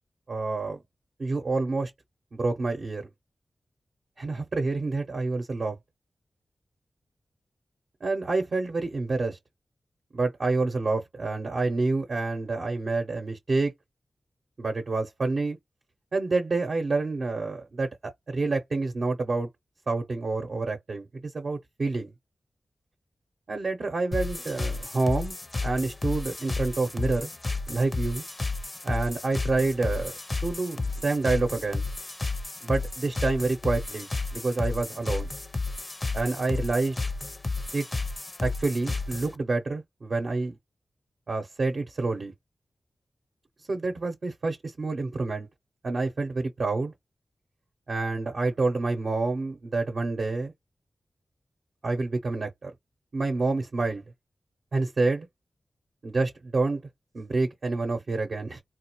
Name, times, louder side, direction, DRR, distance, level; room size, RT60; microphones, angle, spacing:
voice 1, 0.3-0.8 1.2-1.9 2.3-3.1 4.2-5.8 8.0-9.4 10.1-13.7 14.6-15.6 16.1-19.5 19.9-22.1 23.5-25.3 25.6-27.3 27.7-28.2 28.8-30.1 30.4-31.9 32.6-35.3 36.1-37.0 37.7-37.8 38.4-40.6 41.3-42.3 43.7-45.5 45.8-46.9 47.9-50.5 51.8-52.7 53.1-54.0 54.7-55.3 56.0-56.8 57.1-58.6, right 3 dB, 65° right, 0.7 m, -28 dB
sound 1, 24.1-39.4, left 3 dB, 35° left, 0.5 m, -32 dB
3.8 x 2.3 x 3.0 m
cardioid pair, 55°, 0 cm